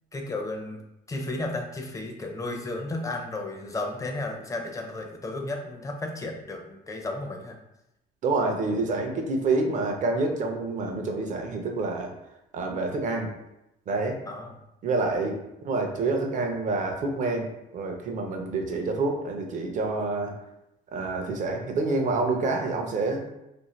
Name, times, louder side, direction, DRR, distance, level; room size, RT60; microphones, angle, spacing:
voice 1, 0.1-0.8 1.1-7.6 14.3-14.6, left 2 dB, 20° left, 2 dB, 0.5 m, -33 dB
voice 2, 8.2-12.1 12.5-13.3 13.9-14.2 14.8-17.5 17.7-20.3 20.9-23.3, right 3 dB, 50° right, 3 dB, 0.6 m, -27 dB
2.5 x 2.4 x 3.1 m, 0.87 s
cardioid pair, 110°, 17 cm